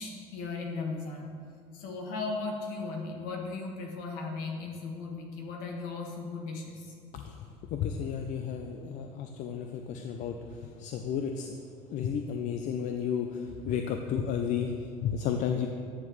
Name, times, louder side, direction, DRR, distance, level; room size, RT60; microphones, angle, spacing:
voice 1, 0.0-1.3 1.7-6.9, left 3 dB, 75° left, 0 dB, 1.6 m, -37 dB
voice 2, 7.1-7.4 7.7-11.5 11.9-15.7, left 7 dB, 55° left, 5 dB, 0.5 m, -32 dB
10.5 x 7.3 x 3.2 m, 2.3 s
supercardioid pair, 115°, 15 cm